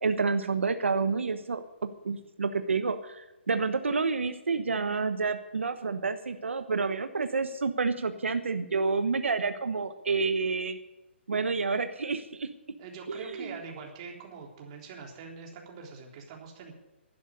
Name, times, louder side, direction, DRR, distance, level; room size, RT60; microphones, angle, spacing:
voice 1, 0.0-10.8 11.3-12.5 13.1-13.5, right 4 dB, 90° right, 9 dB, 1.1 m, -29 dB
voice 2, 12.8-16.7, right 5 dB, 30° right, 0 dB, 3.4 m, -44 dB
12.0 x 10.5 x 9.7 m, 1.0 s
hypercardioid pair, 155°, 6 cm